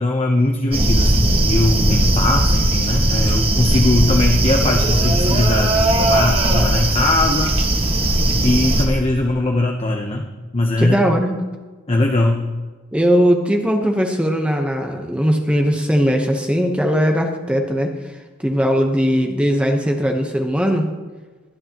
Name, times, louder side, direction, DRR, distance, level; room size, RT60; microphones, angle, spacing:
voice 1, 0.0-7.5 8.4-11.0 11.9-12.5, left 2 dB, 30° left, 2 dB, 0.8 m, -20 dB
sound 1, 0.7-8.9, right 1 dB, 30° right, 1.6 m, -17 dB
voice 2, 10.8-11.4 12.9-20.9, equal, 5° right, 2 dB, 1.0 m, -19 dB
22.5 x 9.7 x 3.0 m, 1.3 s
head